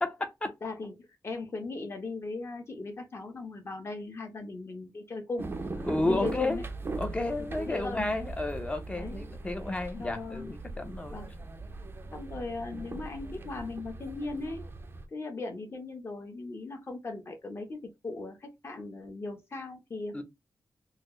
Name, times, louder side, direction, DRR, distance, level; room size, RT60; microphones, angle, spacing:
voice 1, 0.0-0.5 5.8-6.6 7.0-11.2 20.1-20.2, left 2 dB, 15° left, 0.6 m, -32 dB
voice 2, 0.6-6.6 7.4-8.1 8.9-9.2 10.0-10.5 11.1-11.3 12.1-14.6 15.1-20.2, left 3 dB, 35° left, 1.0 m, -38 dB
sound 1, 5.4-15.0, right 3 dB, 30° right, 0.5 m, -40 dB
4.1 x 2.0 x 3.0 m
wide cardioid pair, 175°, 7 cm